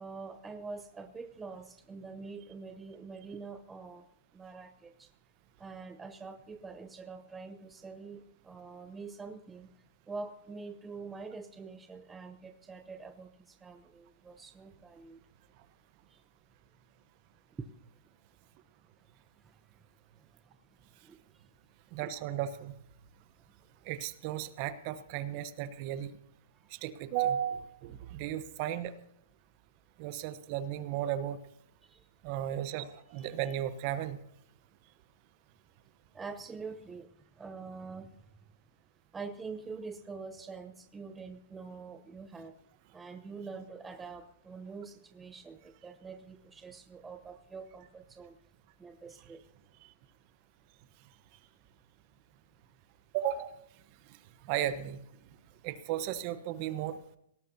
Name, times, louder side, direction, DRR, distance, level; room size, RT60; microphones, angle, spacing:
voice 1, 0.0-4.1 4.3-5.1 5.6-9.7 10.1-15.2 16.1-16.2 17.6-17.7 21.0-21.2 31.9-32.0 33.2-33.3 36.1-37.1 37.4-38.1 39.1-42.5 42.9-48.4 48.8-49.4, right 4 dB, 10° right, 0.7 m, -45 dB
voice 2, 21.9-22.7 23.8-26.2 26.7-28.9 30.0-31.4 32.2-34.2 53.1-53.6 54.1-54.2 54.4-55.0 55.6-57.0, right 11 dB, 40° right, 1.0 m, -35 dB
18.5 x 17.5 x 2.8 m
hypercardioid pair, 140°, 0 cm